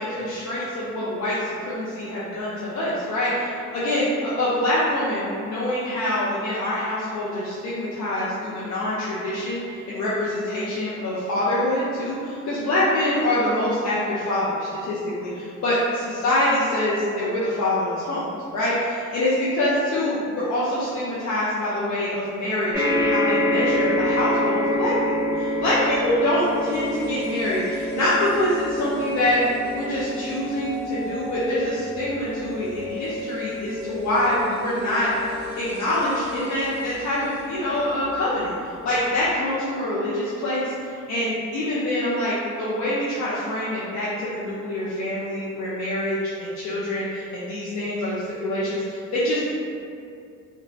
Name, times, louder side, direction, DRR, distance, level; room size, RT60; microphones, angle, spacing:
voice 1, 0.0-18.2 18.5-24.9 25.3-29.4 29.7-35.1 35.6-38.5 38.8-49.4, left 1 dB, 65° left, -9 dB, 0.6 m, -25 dB
sound 1, 22.7-37.3 38.0-38.1 38.4-38.5, left 1 dB, 5° right, 1.5 m, -28 dB
sound 2, 26.3-38.4 38.6-38.7, left 3 dB, 35° right, 0.4 m, -37 dB
2.8 x 2.3 x 2.6 m, 2.5 s
cardioid pair, 90°, 30 cm